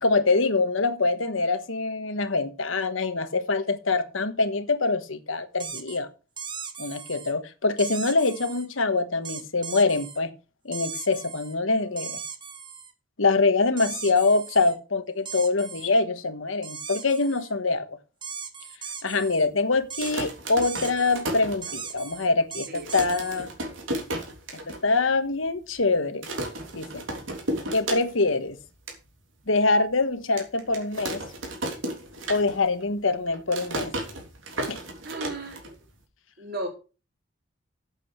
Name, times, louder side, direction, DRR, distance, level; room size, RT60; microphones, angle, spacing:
voice 1, 0.0-6.1 6.8-10.3 10.6-12.2 13.2-17.9 19.0-23.5 24.7-26.3 26.7-27.0 27.7-28.6 29.5-31.2 32.3-33.9 34.7-34.8, left 3 dB, 85° left, 1.3 m, -24 dB
sound 1, 5.6-6.0 6.4-7.3 7.8-8.7 9.2-10.2 10.7-11.6 12.0-12.9 13.8-14.8 15.3-15.9 16.6-17.5 18.2-19.5 19.9-20.1 20.6-21.2 21.6-23.5, right 6 dB, 25° right, 1.0 m, -38 dB
sound 2, 19.8-22.1 22.5-22.6 22.7-24.8 25.2-25.3 25.5-25.8 26.2-28.4 28.7-29.0 29.5-29.6 30.4-32.8 33.1-36.0, right 1 dB, 85° right, 3.3 m, -33 dB
voice 2, 35.0-35.6 36.4-36.7, right 1 dB, 50° right, 3.8 m, -34 dB
8.5 x 7.8 x 6.3 m
head